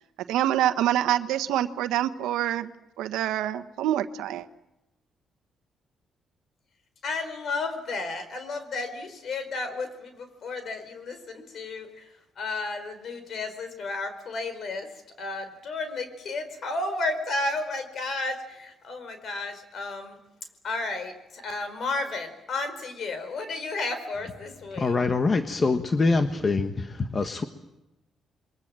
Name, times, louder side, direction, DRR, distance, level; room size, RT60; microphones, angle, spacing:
voice 1, 0.3-2.7 3.0-4.5, right 12 dB, 90° right, 10 dB, 1.2 m, -26 dB
voice 2, 7.0-14.9 15.2-20.2 20.6-25.0, left 3 dB, 60° left, 9 dB, 4.8 m, -33 dB
voice 3, 24.8-27.4, left 3 dB, 35° left, 7 dB, 1.4 m, -24 dB
28.5 x 22.5 x 7.7 m, 0.96 s
cardioid pair, 90°, 0 cm